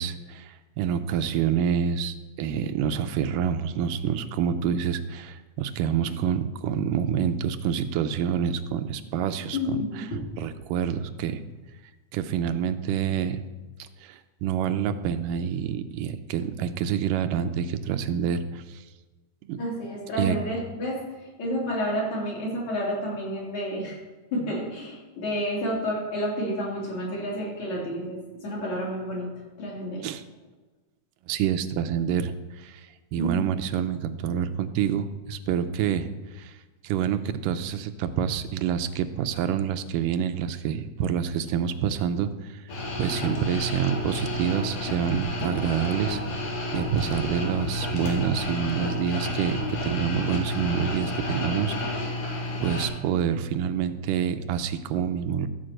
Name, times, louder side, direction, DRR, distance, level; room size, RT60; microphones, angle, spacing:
voice 1, 0.0-10.1 10.4-11.4 12.1-13.4 13.8-18.8 19.5-19.6 20.2-20.4 30.0-30.2 31.3-36.6 36.8-42.6 43.0-46.2 46.7-52.2 52.6-55.5, right 8 dB, 90° right, 10 dB, 2.3 m, -27 dB
voice 2, 9.5-10.3 19.6-21.0 21.4-24.0 24.3-29.3 29.6-30.1 33.2-33.5, equal, 60° left, -4 dB, 4.4 m, -30 dB
sound 1, 42.7-52.9, left 1 dB, 85° left, 3.7 m, -30 dB
14.0 x 5.3 x 7.7 m, 1.2 s
omnidirectional pair, 3.7 m